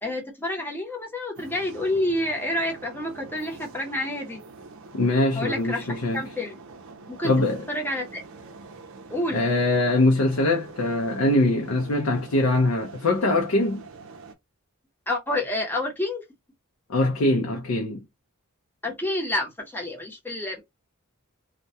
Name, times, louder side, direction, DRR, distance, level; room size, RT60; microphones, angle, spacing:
voice 1, 0.0-4.4 5.3-5.9 6.1-6.6 7.1-7.3 7.7-8.2 9.1-9.4 15.1-16.2 18.8-20.6, left 1 dB, 10° left, 0.7 m, -28 dB
sound 1, 1.3-14.3, right 4 dB, 60° right, 0.5 m, -45 dB
voice 2, 4.9-6.3 7.2-7.6 9.3-13.8 16.9-18.0, left 2 dB, 65° left, 0.5 m, -22 dB
2.2 x 2.1 x 2.6 m
head